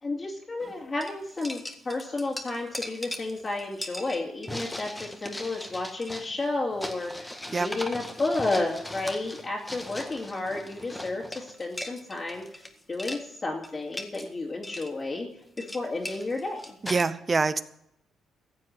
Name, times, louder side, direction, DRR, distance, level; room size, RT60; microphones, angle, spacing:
voice 1, 0.0-12.4 12.9-15.3 15.6-16.7, left 2 dB, 30° left, -5 dB, 2.7 m, -32 dB
sound 1, 0.6-0.7 1.0-12.7 12.9-13.2 13.6-14.3 14.6-14.9 15.4-17.0, left 1 dB, 10° left, 1.7 m, -39 dB
voice 2, 16.8-17.6, right 4 dB, 30° right, 14 dB, 0.9 m, -25 dB
15.0 x 7.6 x 7.9 m, 0.77 s
cardioid pair, 90°, 0 cm